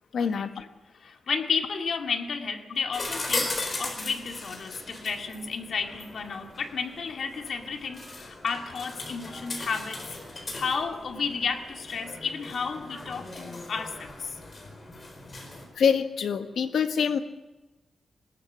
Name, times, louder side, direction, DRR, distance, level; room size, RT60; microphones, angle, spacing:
voice 1, 0.1-0.7 15.7-17.2, left 7 dB, 90° left, 8 dB, 1.4 m, -25 dB
voice 2, 1.0-10.2 10.5-14.4, left 5 dB, 65° left, 3 dB, 2.3 m, -32 dB
sound 1, 2.9-15.7, left 2 dB, 35° left, 4.4 m, -38 dB
20.5 x 18.5 x 8.6 m, 1.1 s
wide cardioid pair, 150°, 0 cm